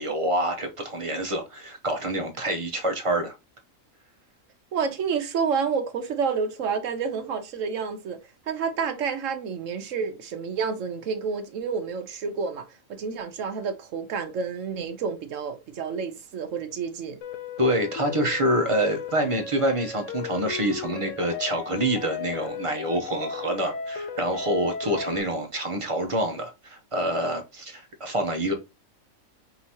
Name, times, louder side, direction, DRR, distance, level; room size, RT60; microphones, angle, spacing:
voice 1, 0.0-3.3 17.6-28.5, right 1 dB, 30° right, 0.7 m, -26 dB
voice 2, 4.7-8.2 8.5-12.6 12.9-17.2, right 6 dB, 65° right, 1.1 m, -29 dB
sound 1, 17.2-25.2, left 6 dB, 70° left, 1.1 m, -35 dB
5.4 x 2.8 x 2.8 m
omnidirectional pair, 1.5 m